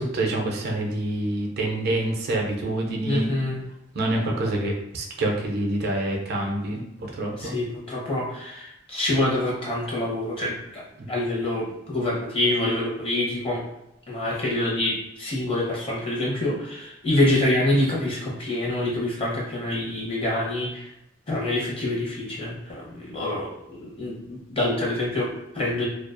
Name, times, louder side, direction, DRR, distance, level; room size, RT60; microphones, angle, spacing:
voice 1, 0.0-3.3 3.9-6.8 7.1-7.5 11.0-11.1, right 1 dB, 55° right, 1 dB, 0.4 m, -26 dB
voice 2, 3.0-3.6 7.4-13.6 14.1-20.9 21.3-25.9, left 1 dB, 30° left, -5 dB, 0.7 m, -26 dB
2.3 x 2.2 x 2.4 m, 0.86 s
head